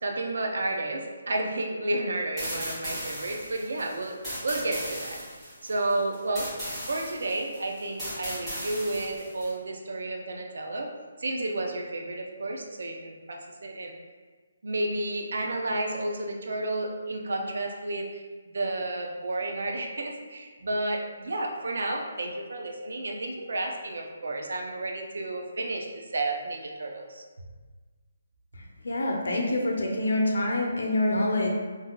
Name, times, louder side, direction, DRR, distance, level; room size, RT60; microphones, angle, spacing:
voice 1, 0.0-4.2 4.4-5.2 5.6-6.5 6.9-10.9 11.2-13.9 14.6-18.2 18.5-27.2, right 2 dB, 75° right, 1 dB, 0.5 m, -31 dB
sound 1, 2.4-9.5, equal, 10° right, 1.2 m, -37 dB
voice 2, 28.6-31.5, left 1 dB, 85° left, 0 dB, 0.7 m, -26 dB
3.7 x 2.6 x 2.3 m, 1.4 s
hypercardioid pair, 170°, 0 cm